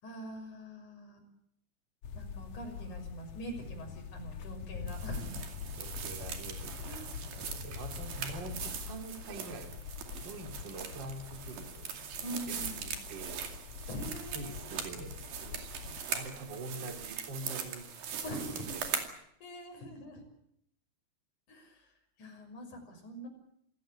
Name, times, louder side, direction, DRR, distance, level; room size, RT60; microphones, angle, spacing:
voice 1, 0.0-1.3 2.1-5.4 6.8-7.3 12.2-12.9 13.9-14.5 18.2-18.7 19.4-20.2 21.5-21.9 22.2-23.3, right 1 dB, 40° left, 2 dB, 7.4 m, -43 dB
sound 1, 2.0-16.1, left 6 dB, 85° left, 1.4 m, -44 dB
sound 2, 4.9-19.1, right 7 dB, 55° right, 3.9 m, -41 dB
voice 2, 5.8-13.7 14.2-15.2 15.5-18.9, right 2 dB, 35° right, 6 dB, 2.1 m, -46 dB
27.5 x 17.0 x 8.5 m, 0.72 s
omnidirectional pair, 5.3 m